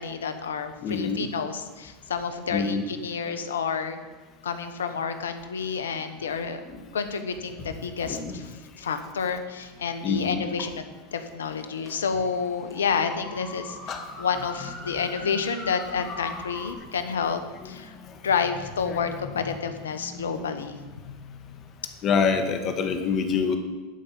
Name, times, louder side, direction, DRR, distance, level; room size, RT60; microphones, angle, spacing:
voice 1, 0.0-4.0 4.4-6.6 6.9-10.9 11.1-17.9 18.2-20.8, left 6 dB, 85° left, 9 dB, 1.1 m, -29 dB
voice 2, 0.8-1.3 2.5-2.9 6.7-6.8 8.0-8.3 10.0-10.5 13.9-14.0 18.9-19.0 19.5-19.6 22.0-23.6, left 5 dB, 40° left, 6 dB, 1.8 m, -26 dB
sound 1, 11.5-16.7, left 1 dB, 20° left, 3.1 m, -41 dB
11.5 x 5.3 x 8.8 m, 1.2 s
hypercardioid pair, 95°, 0 cm